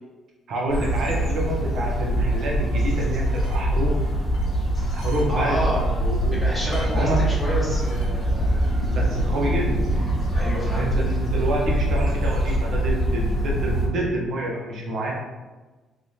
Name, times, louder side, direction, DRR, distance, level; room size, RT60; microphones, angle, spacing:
voice 1, 0.5-3.9 4.9-5.7 6.0-6.4 6.9-7.2 8.8-9.8 10.7-15.1, right 1 dB, 65° right, -2 dB, 0.9 m, -27 dB
sound 1, 0.7-13.9, right 1 dB, 30° left, 1.0 m, -23 dB
sound 2, 3.2-3.6 4.3-5.3 5.6-5.7 6.7-7.0 7.7-8.1 8.6-9.0, left 1 dB, 80° left, 1.0 m, -45 dB
voice 2, 5.3-5.8 6.3-8.5 10.3-10.9, equal, 10° right, -7 dB, 1.1 m, -29 dB
3.4 x 3.3 x 2.7 m, 1.2 s
cardioid pair, 120°, 0 cm